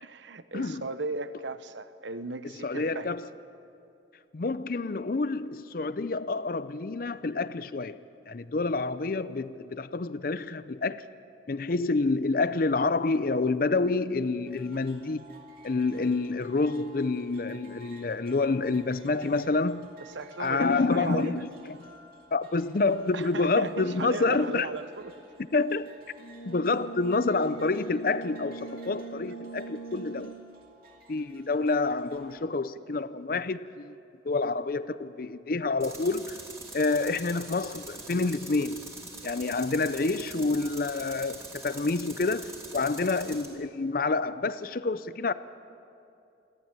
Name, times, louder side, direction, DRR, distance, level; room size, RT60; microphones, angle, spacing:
voice 1, 0.0-3.1 20.1-21.5 23.1-25.1, right 3 dB, 80° right, 0.9 m, -36 dB
voice 2, 2.6-3.3 4.3-8.0 8.3-11.0 11.5-15.3 15.6-19.9 20.4-21.8 22.3-24.7 25.5-25.9 26.5-30.3 31.1-34.0 34.2-36.4 36.7-38.8 39.2-45.3, left 3 dB, 50° left, 0.5 m, -28 dB
sound 1, 14.5-32.3, right 2 dB, 50° right, 2.7 m, -55 dB
Brass instrument, 26.2-30.6, right 4 dB, 80° left, 1.7 m, -41 dB
Tools, 35.8-43.5, right 2 dB, 15° right, 3.1 m, -44 dB
28.0 x 12.5 x 8.9 m
head